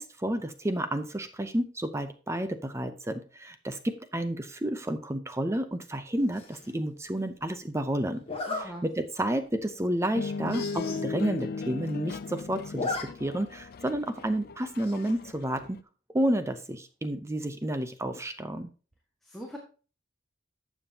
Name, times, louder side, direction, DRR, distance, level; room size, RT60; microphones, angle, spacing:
voice 1, 0.0-8.2 8.6-15.8 16.1-18.7, right 1 dB, 15° right, 9 dB, 0.6 m, -31 dB
Zipper (clothing), 6.3-6.7 8.2-8.6 9.2-9.4 9.7-9.8 10.0-10.1 10.4-11.0 11.4-11.5 11.7-12.2 12.5-13.0 13.4-13.5 14.8-15.2, left 3 dB, 35° left, 1.9 m, -35 dB
voice 2, 8.5-8.9 19.2-19.6, equal, ahead, -1 dB, 1.6 m, -41 dB
sound 1, 10.1-15.8, left 4 dB, 55° left, 0.4 m, -37 dB
12.5 x 7.2 x 2.8 m, 0.35 s
head